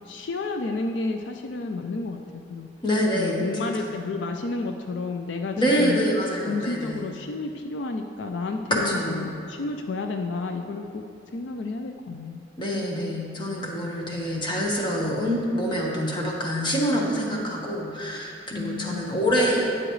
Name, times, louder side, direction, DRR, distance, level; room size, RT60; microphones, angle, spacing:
voice 1, 0.1-2.7 3.1-6.0 6.5-11.0 11.3-12.4 18.5-19.3, left 3 dB, 75° left, 5 dB, 0.5 m, -31 dB
voice 2, 2.8-3.9 5.6-7.0 8.7-9.3 12.6-19.6, equal, 25° left, -2 dB, 1.3 m, -26 dB
11.5 x 8.9 x 3.2 m, 2.6 s
head